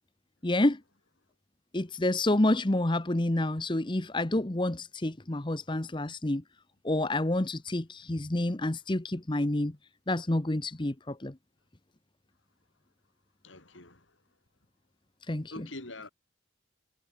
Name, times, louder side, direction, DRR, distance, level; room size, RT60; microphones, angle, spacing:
voice 1, 0.4-0.8 1.7-6.4 6.8-9.8 10.1-11.3 15.3-15.7, left 1 dB, 25° left, 0.9 m, -28 dB
voice 2, 13.4-14.1 15.5-16.1, left 2 dB, 80° left, 4.7 m, -44 dB
head